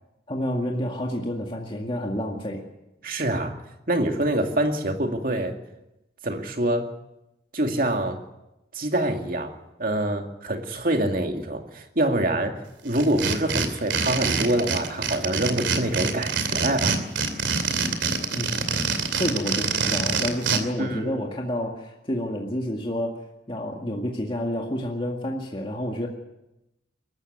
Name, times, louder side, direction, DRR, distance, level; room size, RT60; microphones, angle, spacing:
voice 1, 0.3-2.6 18.3-18.5 19.2-26.1, equal, 30° left, 0 dB, 2.1 m, -29 dB
voice 2, 3.0-3.5 3.9-5.6 6.2-6.9 7.5-8.2 8.7-17.1 20.8-21.1, right 1 dB, 50° right, 4 dB, 2.4 m, -25 dB
sound 1, 12.9-20.6, right 5 dB, 90° right, 2.7 m, -25 dB
22.5 x 13.5 x 9.4 m, 0.91 s
head